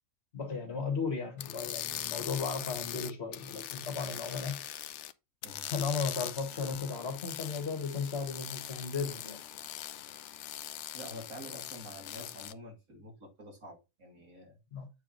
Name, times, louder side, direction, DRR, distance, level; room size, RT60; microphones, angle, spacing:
voice 1, 0.3-4.6 5.7-9.4 14.7-14.9, left 5 dB, 50° left, 1.7 m, -35 dB
sound 1, 1.4-5.1 5.4-12.5, left 12 dB, 65° left, 0.8 m, -41 dB
voice 2, 10.9-14.6, equal, 85° right, 3.1 m, -48 dB
8.1 x 4.7 x 3.9 m
omnidirectional pair, 1.4 m